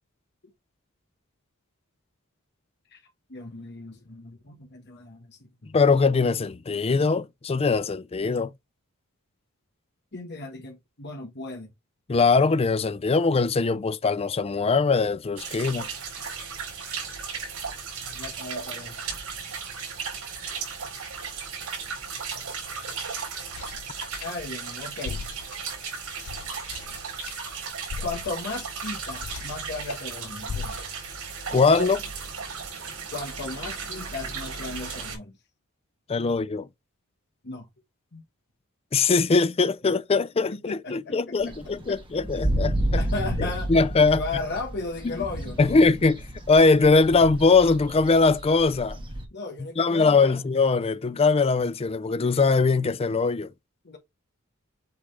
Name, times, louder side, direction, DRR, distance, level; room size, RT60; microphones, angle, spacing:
voice 1, 3.3-5.7 10.1-11.7 18.1-19.0 24.2-25.2 28.0-30.9 33.1-35.3 37.4-37.7 38.1-38.2 40.5-41.3 41.9-42.0 43.0-43.7 44.0-45.8 49.3-50.4 53.8-54.0, left 3 dB, 50° left, 1.2 m, -36 dB
voice 2, 5.7-8.5 12.1-15.9 31.5-32.0 36.1-36.7 38.9-43.0 43.7-44.2 45.0-45.1 45.6-46.2 46.5-49.0 49.8-53.5, left 4 dB, 25° left, 0.4 m, -21 dB
sound 1, 15.4-35.2, right 5 dB, 85° right, 4.0 m, -35 dB
sound 2, 22.3-24.7 25.0-30.0 30.5-31.2, left 6 dB, 80° left, 0.5 m, -40 dB
sound 3, 41.4-49.2, right 1 dB, 25° right, 1.5 m, -31 dB
8.2 x 3.5 x 3.2 m
head